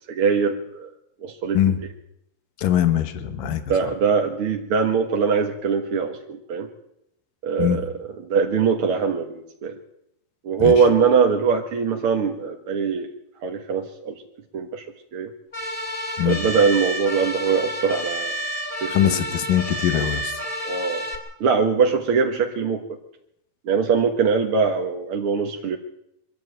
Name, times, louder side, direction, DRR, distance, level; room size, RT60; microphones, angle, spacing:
voice 1, 0.1-0.9 1.2-1.7 3.7-6.7 7.4-7.9 8.3-9.8 10.4-13.1 13.4-14.2 14.5-14.8 15.1-15.3 16.2-18.3 18.8-19.2 20.7-21.0 21.4-22.8 23.7-25.8, right 5 dB, 50° right, 2 dB, 1.8 m, -22 dB
voice 2, 2.6-3.9 7.6-7.9 10.6-10.7 16.2-16.4 18.9-20.5, left 11 dB, 70° left, 9 dB, 3.1 m, -22 dB
sound 1, 15.5-21.1, equal, 15° left, 2.7 m, -30 dB
24.0 x 13.0 x 9.1 m, 0.80 s
omnidirectional pair, 4.2 m